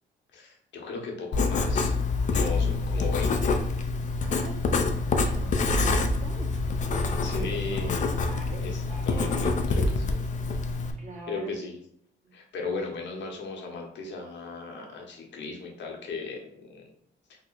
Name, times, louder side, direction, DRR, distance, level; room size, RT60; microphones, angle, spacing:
voice 1, 0.3-2.0 2.3-3.6 7.2-8.1 8.6-10.2 11.3-11.7 12.3-16.8, left 3 dB, 65° left, 1 dB, 0.9 m, -36 dB
Writing, 1.3-10.9, left 3 dB, 40° left, 0.4 m, -26 dB
voice 2, 4.2-4.9 5.2-6.6 6.9-8.0 8.3-9.6 11.0-11.7 12.2-12.3, right 3 dB, 40° right, -2 dB, 1.2 m, -44 dB
3.0 x 2.1 x 3.8 m, 0.71 s
cardioid pair, 90°, 20 cm